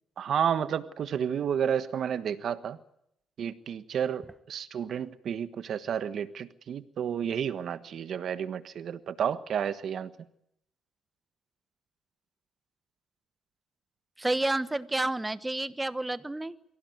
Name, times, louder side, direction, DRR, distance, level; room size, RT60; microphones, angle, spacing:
voice 1, 0.2-2.8 3.4-10.1, right 8 dB, 65° right, 11 dB, 1.4 m, -31 dB
voice 2, 14.2-16.5, right 2 dB, 15° right, 13 dB, 1.1 m, -30 dB
24.0 x 17.0 x 9.6 m, 0.78 s
cardioid pair, 90°, 0 cm